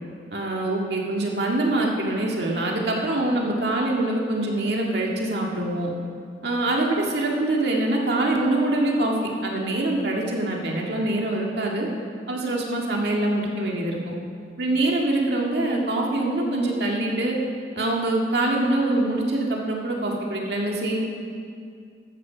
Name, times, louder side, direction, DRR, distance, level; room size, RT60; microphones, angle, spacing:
voice 1, 0.3-5.9 6.4-11.9 12.3-14.1 14.6-17.4 17.8-21.0, right 2 dB, 65° right, -1 dB, 2.0 m, -24 dB
14.5 x 13.0 x 5.1 m, 2.3 s
head